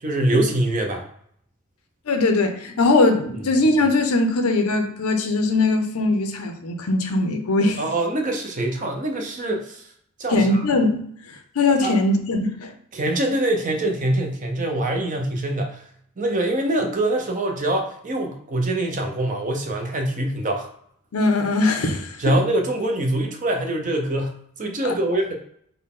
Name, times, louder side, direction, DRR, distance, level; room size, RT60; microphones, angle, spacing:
voice 1, 0.0-1.1 7.8-9.8 10.2-10.6 11.8-11.9 12.9-15.8 16.2-20.7 22.2-25.3, right 1 dB, 35° right, 3 dB, 0.6 m, -24 dB
voice 2, 2.1-7.8 10.3-11.0 11.5-12.7 21.1-22.3 24.8-24.9, left 2 dB, 85° left, 5 dB, 0.7 m, -20 dB
4.0 x 2.2 x 3.7 m, 0.66 s
head